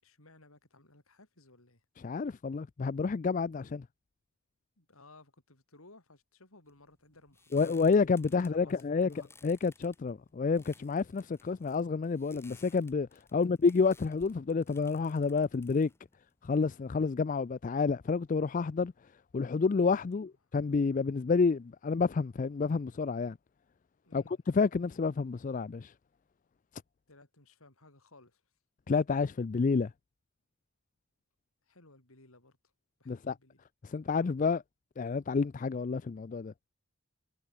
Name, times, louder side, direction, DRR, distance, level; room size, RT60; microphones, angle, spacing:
voice 1, 0.0-1.8 4.8-7.7 8.4-9.3 13.3-13.6 20.1-20.2 24.0-24.4 27.1-28.4 31.6-32.6 33.0-33.6, left 2 dB, 80° left, 4.7 m, -59 dB
voice 2, 2.0-3.8 7.5-9.1 9.4-15.9 16.4-18.9 19.3-23.4 24.1-25.9 28.9-29.9 33.1-33.3 33.8-34.6 35.0-36.5, left 4 dB, 35° left, 0.3 m, -29 dB
sound 1, 6.7-17.0, left 3 dB, 10° left, 6.6 m, -61 dB
head